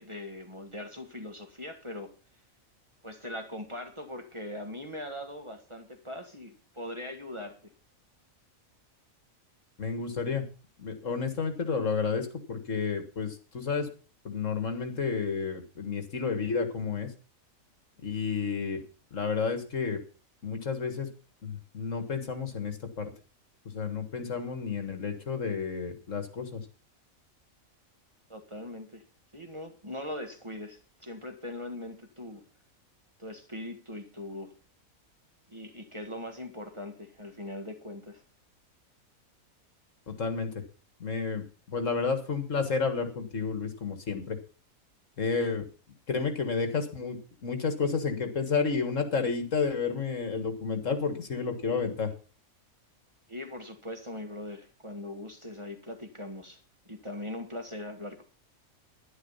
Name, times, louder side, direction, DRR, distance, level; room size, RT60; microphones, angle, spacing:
voice 1, 0.0-2.1 3.0-7.7 28.3-29.0 29.3-32.4 33.2-34.5 35.5-38.2 53.3-58.2, left 1 dB, 20° right, 4 dB, 1.6 m, -41 dB
voice 2, 9.8-10.4 10.8-13.9 14.2-17.1 18.0-18.8 19.1-20.0 20.4-21.1 21.4-23.1 23.7-26.6 40.1-40.6 41.0-44.4 45.2-45.7 46.1-52.1, left 5 dB, 65° left, 8 dB, 2.1 m, -31 dB
11.0 x 10.5 x 5.6 m, 0.37 s
omnidirectional pair, 1.4 m